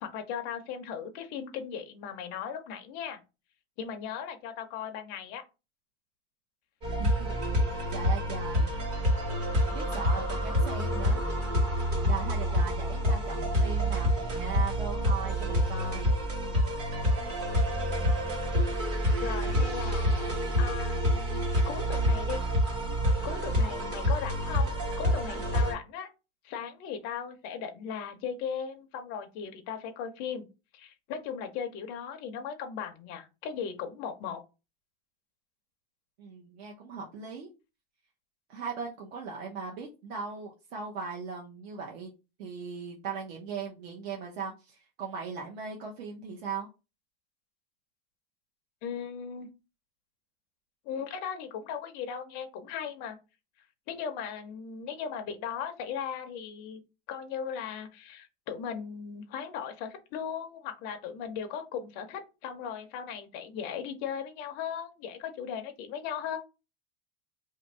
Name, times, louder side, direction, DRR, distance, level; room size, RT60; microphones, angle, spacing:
voice 1, 0.0-3.2 3.8-5.4 19.2-22.4 23.2-26.1 26.4-30.5 30.7-34.4 48.8-49.5 50.8-53.2 53.9-56.8 57.1-66.4, left 7 dB, 25° left, 5 dB, 0.4 m, -37 dB
sound 1, 6.8-25.7, equal, 40° right, 1.1 m, -27 dB
voice 2, 7.0-7.3 7.7-8.7 9.7-11.2 12.0-16.1 36.2-37.5 38.5-42.1 42.4-46.7, right 5 dB, 60° right, -1 dB, 0.8 m, -38 dB
2.7 x 2.5 x 4.1 m, 0.29 s
supercardioid pair, 165°, 36 cm